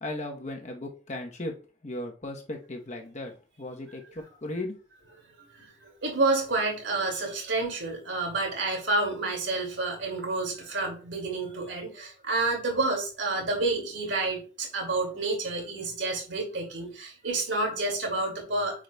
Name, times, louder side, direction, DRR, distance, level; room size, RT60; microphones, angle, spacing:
voice 1, 0.0-1.5 1.8-4.7, left 1 dB, 35° left, 2 dB, 1.0 m, -36 dB
voice 2, 5.4-18.8, right 2 dB, 75° right, 1 dB, 2.4 m, -29 dB
9.2 x 4.9 x 2.3 m, 0.37 s
head